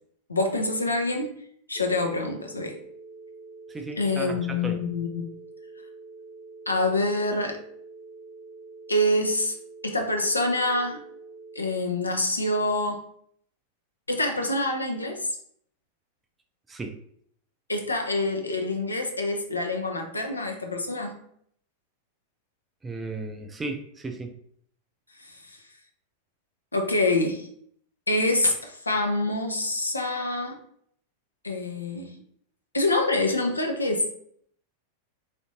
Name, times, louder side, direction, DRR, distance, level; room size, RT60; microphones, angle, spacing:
voice 1, 0.3-1.4 1.7-2.8 4.0-5.3 6.7-7.6 8.9-9.6 9.8-11.0 11.6-13.0 14.1-15.3 17.7-21.1 25.2-25.4 26.7-27.5 28.1-30.6 31.4-32.2 32.7-34.0, left 2 dB, 80° left, 3 dB, 0.5 m, -26 dB
sound 1, 1.7-11.8, right 3 dB, 10° left, 0.9 m, -46 dB
voice 2, 3.7-4.8 16.7-17.0 22.8-24.3, right 2 dB, 15° right, 6 dB, 0.4 m, -35 dB
3.5 x 2.5 x 2.7 m, 0.66 s
figure-of-eight pair, 90°, 0 cm